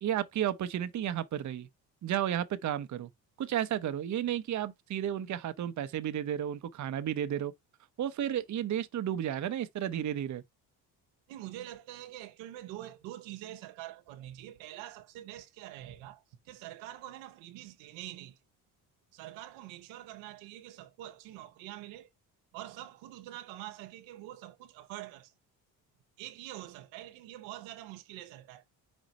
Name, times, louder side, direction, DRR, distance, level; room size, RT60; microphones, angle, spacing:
voice 1, 0.0-1.7 2.0-3.1 3.4-7.5 8.0-10.4, right 10 dB, 40° right, 0.7 m, -32 dB
voice 2, 11.3-18.4 19.1-22.1 22.5-25.3 26.2-28.7, right 14 dB, 85° right, 0.8 m, -45 dB
5.2 x 2.5 x 4.1 m
supercardioid pair, 60°, 44 cm